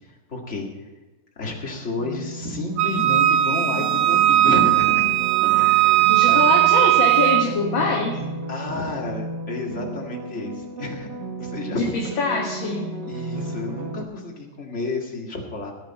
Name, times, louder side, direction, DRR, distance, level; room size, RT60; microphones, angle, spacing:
voice 1, 0.1-0.9 1.4-5.1 5.4-6.4 8.5-11.1 11.4-12.2 12.9-15.7, left 3 dB, 25° left, -1 dB, 2.0 m, -31 dB
sound 1, 2.0-14.0, right 3 dB, 50° right, 1.4 m, -33 dB
Wind instrument woodwind instrument, 2.8-7.5, right 15 dB, 90° right, 1.2 m, -18 dB
voice 2, 6.0-8.2 11.7-12.9, left 4 dB, 50° left, -1 dB, 2.0 m, -24 dB
18.0 x 9.7 x 4.3 m, 1.2 s
omnidirectional pair, 3.3 m